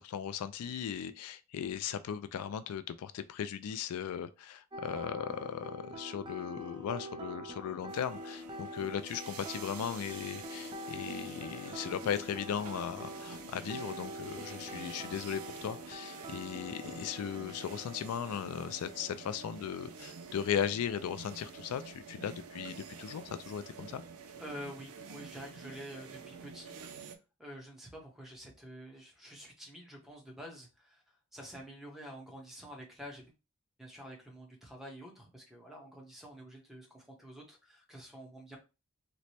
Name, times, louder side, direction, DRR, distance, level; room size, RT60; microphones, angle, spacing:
voice 1, 0.0-24.0, left 8 dB, 80° left, 0.3 m, -37 dB
sound 1, 4.7-19.2, equal, 20° right, 0.4 m, -45 dB
sound 2, 7.9-27.1, right 5 dB, 75° right, 0.5 m, -48 dB
voice 2, 24.4-26.8 27.4-33.3 33.8-38.6, equal, ahead, 0.8 m, -48 dB
3.1 x 2.1 x 4.1 m
head